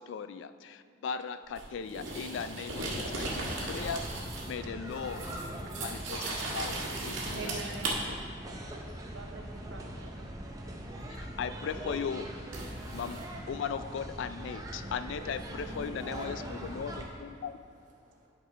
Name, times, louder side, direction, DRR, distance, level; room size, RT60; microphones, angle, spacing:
voice 1, 0.0-4.1 4.5-5.3 5.8-7.5 7.9-8.2 11.2-12.3 12.9-13.2 13.5-17.5, left 6 dB, 70° left, 13 dB, 0.3 m, -38 dB
sound 1, 1.5-4.6 4.9-7.9 11.1-11.3 12.5-13.2, right 2 dB, 90° right, 1.5 m, -37 dB
sound 2, 3.2-17.0, right 1 dB, 20° right, 0.6 m, -42 dB
voice 2, 7.3-8.0 9.1-10.2, right 3 dB, 70° right, 2 dB, 0.8 m, -43 dB
voice 3, 14.6-18.3, equal, 40° right, -3 dB, 1.3 m, -49 dB
11.0 x 5.4 x 3.3 m, 2.4 s
head